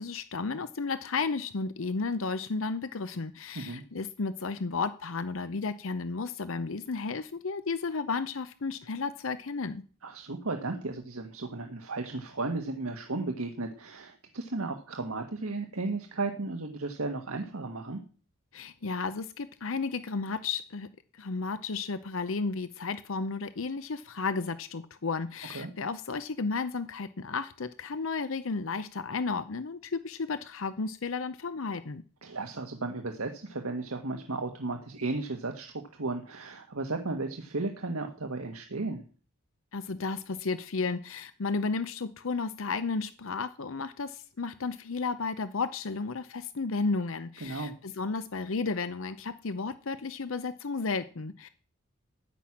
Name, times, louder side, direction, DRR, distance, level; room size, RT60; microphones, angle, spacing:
voice 1, 0.0-9.8 18.5-20.9 21.1-32.0 39.7-51.5, left 4 dB, 70° left, 12 dB, 0.7 m, -33 dB
voice 2, 10.0-18.0 25.5-25.7 32.2-39.0 47.4-47.7, right 3 dB, 85° right, 4 dB, 1.6 m, -34 dB
14.5 x 6.1 x 9.9 m, 0.40 s
head